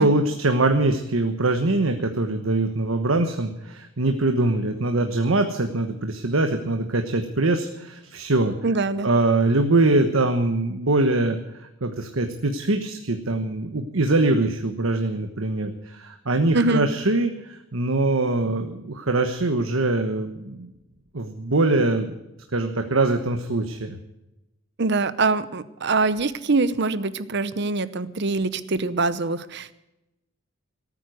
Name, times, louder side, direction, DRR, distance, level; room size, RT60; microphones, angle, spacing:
voice 1, 0.0-8.5 9.0-11.4 11.8-20.7 21.1-22.1 22.5-24.0, right 2 dB, 80° right, 6 dB, 1.3 m, -23 dB
voice 2, 8.6-9.1 16.5-16.9 24.8-29.7, right 3 dB, 55° right, 15 dB, 0.9 m, -23 dB
18.0 x 9.2 x 7.9 m, 0.93 s
head